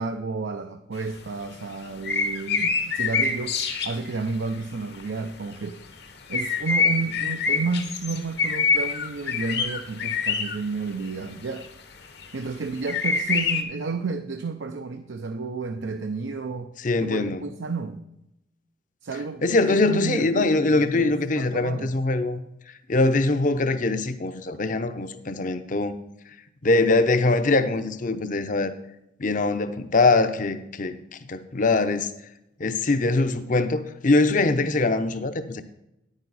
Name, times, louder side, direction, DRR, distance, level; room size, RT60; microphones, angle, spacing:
voice 1, 0.0-3.6 3.8-5.8 6.3-11.7 12.3-16.7 17.0-18.0 19.0-21.9, right 4 dB, 85° right, 6 dB, 0.6 m, -31 dB
sound 1, 1.0-1.1 2.0-4.1 4.5-4.6 4.9-5.0 6.3-10.6 11.6-11.7 12.2-12.3 12.9-13.6, left 5 dB, 65° left, 1.1 m, -25 dB
voice 2, 16.8-17.4 19.4-22.4 22.9-26.0 26.6-28.7 29.2-31.0 31.3-32.1 32.6-35.6, left 3 dB, 45° left, 10 dB, 0.7 m, -22 dB
10.0 x 9.0 x 4.1 m, 0.84 s
head